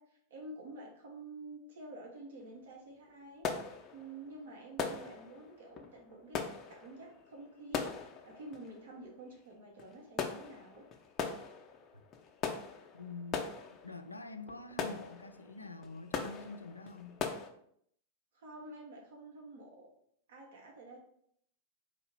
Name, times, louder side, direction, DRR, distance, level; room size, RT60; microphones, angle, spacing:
voice 1, 0.0-6.4 6.7-10.8 18.3-19.9 20.3-21.0, right 2 dB, 60° right, 1.0 m, -49 dB
sound 1, 2.4-2.6 2.9-17.5, left 5 dB, 30° left, 0.6 m, -41 dB
voice 2, 12.9-13.5 13.8-17.2, left 3 dB, 85° left, 0.3 m, -46 dB
4.1 x 2.7 x 4.6 m
figure-of-eight pair, 90°, 0 cm